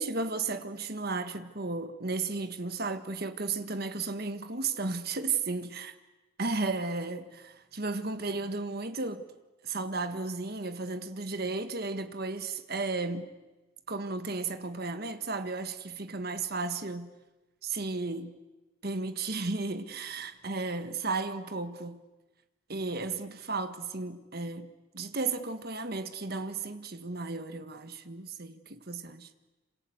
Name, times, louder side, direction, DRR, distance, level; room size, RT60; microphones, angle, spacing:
voice 1, 0.0-5.9 6.4-9.2 9.6-13.3 13.9-17.1 17.6-18.3 18.8-22.0 22.7-24.7 24.9-29.3, right 3 dB, 50° right, 1.6 m, -34 dB
27.0 x 26.5 x 8.0 m
head